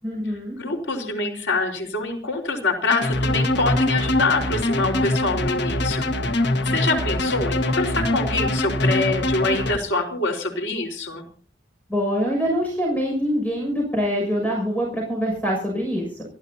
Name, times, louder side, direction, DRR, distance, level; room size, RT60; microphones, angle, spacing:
voice 1, 0.0-0.5 11.9-16.3, equal, 10° left, -1 dB, 6.6 m, -24 dB
voice 2, 0.6-11.3, left 3 dB, 85° left, 2 dB, 4.7 m, -25 dB
sound 1, 2.9-9.8, left 1 dB, 70° left, 1.6 m, -23 dB
27.5 x 13.0 x 2.9 m, 0.42 s
head